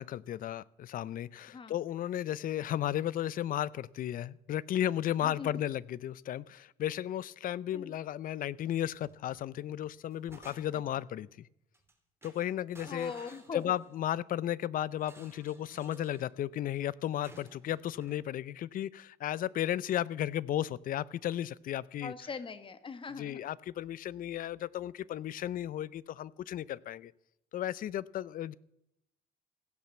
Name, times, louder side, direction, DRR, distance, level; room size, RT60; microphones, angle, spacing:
voice 1, 0.0-11.5 12.2-13.1 13.5-22.1 23.2-27.1 27.5-28.5, left 11 dB, 55° left, 22 dB, 0.6 m, -34 dB
voice 2, 5.2-5.6 7.7-7.9 10.7-10.8 12.8-13.7 22.0-23.4, left 5 dB, 30° left, 12 dB, 1.6 m, -41 dB
sound 1, 9.0-9.5 9.8-11.0 11.7-11.9 12.2-14.1 15.0-16.3 17.2-18.2, right 3 dB, 15° right, 2.9 m, -55 dB
15.5 x 10.5 x 7.5 m, 0.79 s
cardioid pair, 110°, 17 cm